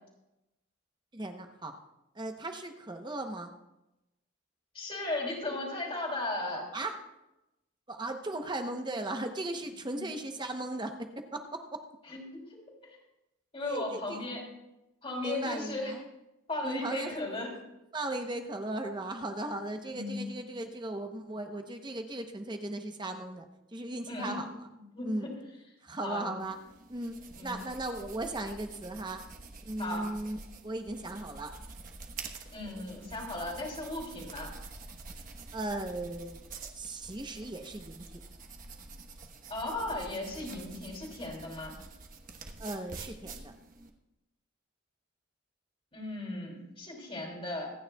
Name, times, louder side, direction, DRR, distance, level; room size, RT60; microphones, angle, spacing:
voice 1, 1.1-1.8 2.1-3.5 6.7-7.0 7.9-11.8 13.7-14.2 15.2-16.0 16.6-17.2 17.9-24.5 25.0-25.3 25.8-26.6 26.9-29.2 29.6-30.4 30.6-31.5 35.5-36.4 36.7-38.2 42.6-43.5, right 2 dB, 20° right, 5 dB, 0.8 m, -37 dB
voice 2, 4.7-6.7 9.9-10.0 12.1-12.5 13.5-14.4 15.0-15.9 16.5-17.5 19.9-20.2 24.1-24.4 24.7-25.3 26.0-26.3 27.3-27.6 29.8-30.1 32.5-34.5 39.5-41.8 45.9-47.7, left 2 dB, 25° left, -1 dB, 2.9 m, -36 dB
sound 1, 26.4-43.9, right 4 dB, 40° right, 1.1 m, -47 dB
25.5 x 9.5 x 2.3 m, 0.93 s
head